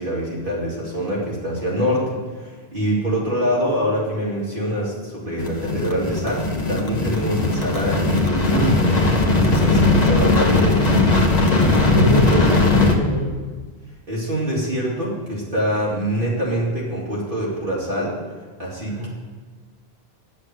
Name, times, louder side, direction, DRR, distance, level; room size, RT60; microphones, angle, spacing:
voice 1, 0.0-2.1 2.4-8.8 9.3-10.8 14.1-18.2 18.6-19.1, equal, 55° right, -5 dB, 2.9 m, -24 dB
sound 1, 5.4-13.0, left 2 dB, 40° left, 1.2 m, -18 dB
voice 2, 11.9-13.4 18.8-19.1, left 1 dB, 25° right, -5 dB, 2.3 m, -23 dB
10.0 x 6.5 x 7.9 m, 1.4 s
omnidirectional pair, 1.1 m